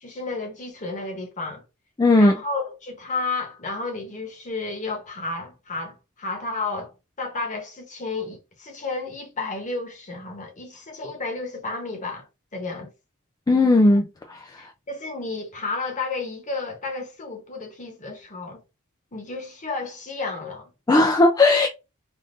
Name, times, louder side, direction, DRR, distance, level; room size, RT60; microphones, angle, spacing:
voice 1, 0.0-1.6 2.2-12.3 12.5-12.9 14.6-18.6 19.1-20.7, left 3 dB, 35° left, 1.1 m, -32 dB
voice 2, 2.0-2.3 13.5-14.4 20.9-21.7, left 2 dB, 15° left, 0.3 m, -17 dB
3.5 x 2.5 x 2.6 m
head